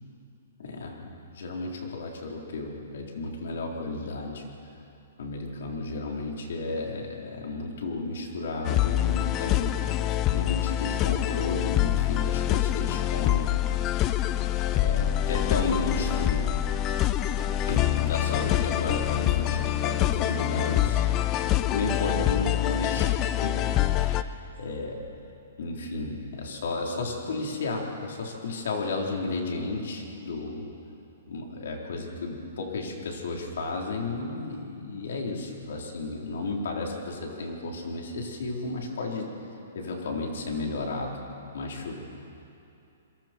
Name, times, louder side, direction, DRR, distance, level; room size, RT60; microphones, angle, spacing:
voice 1, 0.6-4.5 5.2-13.5 14.7-16.5 17.7-21.1 21.6-25.0 25.6-30.7 31.3-39.3 39.7-41.1 41.5-42.0, left 3 dB, 65° left, 0 dB, 4.0 m, -33 dB
sound 1, 8.6-24.2, left 13 dB, 20° left, 0.4 m, -25 dB
28.5 x 22.5 x 4.6 m, 2.7 s
hypercardioid pair, 175°, 0 cm